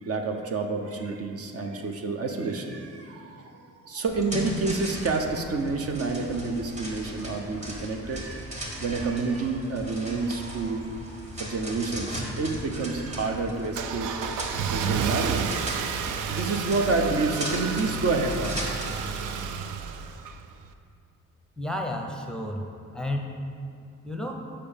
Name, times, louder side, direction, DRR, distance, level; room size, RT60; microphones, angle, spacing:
voice 1, 0.0-15.5 16.3-18.8 19.1-19.3, right 3 dB, 50° right, 3 dB, 0.8 m, -29 dB
sound 1, 4.1-19.1, equal, 25° right, 1.8 m, -37 dB
Car / Engine starting, 12.5-20.7, right 6 dB, 85° right, 0.5 m, -31 dB
voice 2, 21.6-22.7 22.9-23.4 24.0-24.3, left 1 dB, ahead, 2 dB, 0.7 m, -31 dB
6.8 x 5.8 x 5.2 m, 2.3 s
cardioid pair, 90°, 30 cm